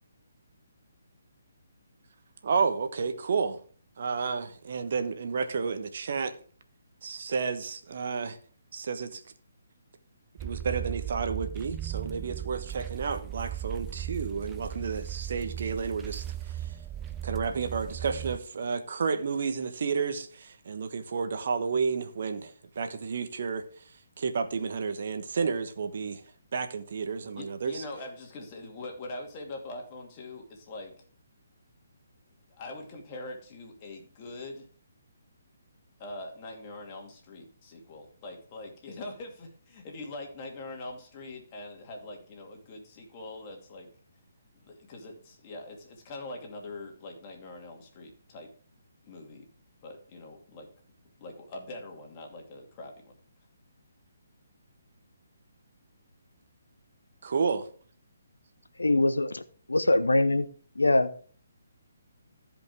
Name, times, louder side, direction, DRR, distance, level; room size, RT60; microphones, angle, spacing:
voice 1, 2.4-3.6 4.0-6.3 7.0-8.4 8.7-9.2 10.4-16.8 17.2-23.8 24.2-26.2 26.5-27.8 57.2-57.7, right 5 dB, 55° right, 1.2 m, -31 dB
sound 1, 10.4-18.4, right 12 dB, 15° right, 0.7 m, -37 dB
voice 2, 27.4-30.9 32.5-34.7 36.0-43.9 44.5-48.5 49.1-49.5 49.8-50.7 51.2-53.1, left 2 dB, 30° left, 2.6 m, -43 dB
voice 3, 58.8-59.4 59.7-60.5 60.8-61.1, left 2 dB, 85° left, 0.9 m, -23 dB
14.5 x 5.2 x 3.6 m
figure-of-eight pair, 140°, 0 cm